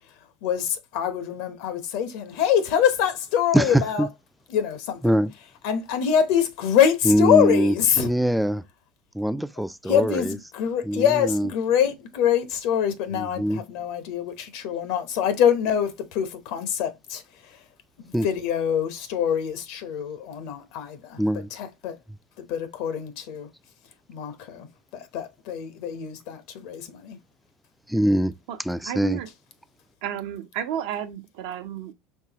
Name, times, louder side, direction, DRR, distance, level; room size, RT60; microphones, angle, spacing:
voice 1, 0.4-4.1 4.5-5.2 5.6-8.1 9.8-17.6 18.0-21.2 21.5-22.0 22.4-23.5 24.1-24.7 24.9-27.2, left 9 dB, 70° left, 0.9 m, -25 dB
voice 2, 3.5-4.1 5.0-5.3 7.1-8.6 9.1-10.3 10.8-11.5 13.1-13.6 18.1-18.3 21.2-21.5 27.9-28.3 28.7-29.2, equal, ahead, 0.4 m, -23 dB
voice 3, 28.8-29.3 30.0-31.9, right 10 dB, 75° right, 0.8 m, -32 dB
4.6 x 3.3 x 2.9 m
hypercardioid pair, 90°, 0 cm